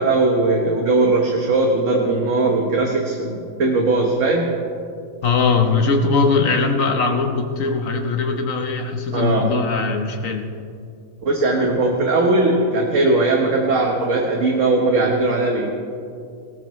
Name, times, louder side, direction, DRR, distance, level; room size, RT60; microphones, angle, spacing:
voice 1, 0.0-4.5 9.1-9.5 11.2-15.7, right 2 dB, 55° right, 0 dB, 1.6 m, -19 dB
voice 2, 5.2-10.5, left 4 dB, 60° left, 5 dB, 1.4 m, -20 dB
19.5 x 18.0 x 3.1 m, 2.4 s
omnidirectional pair, 1.6 m